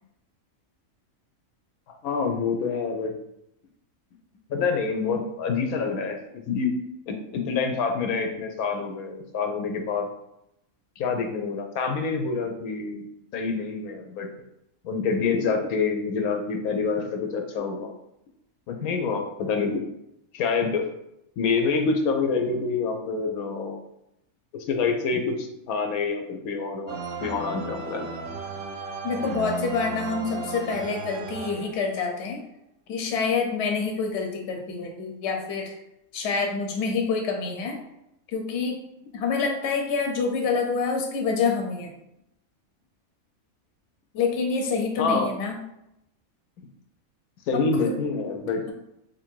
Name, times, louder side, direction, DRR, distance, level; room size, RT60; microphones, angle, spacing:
voice 1, 1.9-3.2 4.5-6.7 7.1-10.1 11.0-13.1 13.3-14.3 14.8-17.9 18.7-19.8 20.3-20.8 21.4-23.8 24.5-28.1 45.0-45.3 47.5-48.6, left 5 dB, 85° left, 4 dB, 1.0 m, -27 dB
sound 1, 26.9-32.1, right 4 dB, 85° right, 1.0 m, -35 dB
voice 2, 29.0-32.4 32.9-35.7 36.1-37.8 38.3-38.8 39.1-41.9 44.1-45.6 47.5-47.9, left 5 dB, 60° left, 2 dB, 0.9 m, -27 dB
2.9 x 2.6 x 4.4 m, 0.82 s
omnidirectional pair, 1.5 m